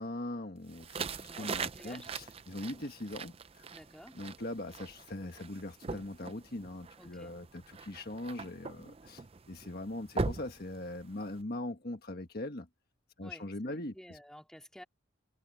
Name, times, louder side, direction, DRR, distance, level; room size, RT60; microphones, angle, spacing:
voice 1, 0.0-3.6 4.1-12.7 13.2-14.2, left 1 dB, 45° left, 1.5 m, -41 dB
sound 1, 0.7-11.4, right 4 dB, 30° right, 0.5 m, -41 dB
voice 2, 1.2-2.1 3.7-4.2 7.0-7.4 13.2-14.8, equal, 5° left, 2.8 m, -52 dB
head